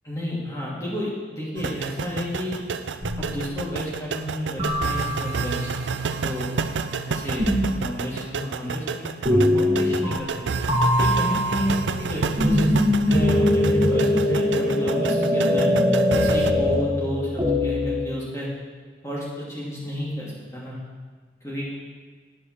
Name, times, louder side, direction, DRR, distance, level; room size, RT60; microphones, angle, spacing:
voice 1, 0.0-2.6 3.2-5.7 6.1-6.5 7.1-10.4 11.0-12.8 13.0-15.7 16.1-18.5 19.0-20.8 21.4-21.8, equal, 15° left, -7 dB, 2.7 m, -31 dB
sound 1, 1.6-16.5, right 5 dB, 90° right, 0.5 m, -30 dB
sound 2, 3.0-3.8 4.6-5.7 7.4-8.0 9.2-10.4 10.7-18.1, left 1 dB, 25° right, 1.6 m, -22 dB
10.0 x 5.5 x 6.2 m, 1.5 s
head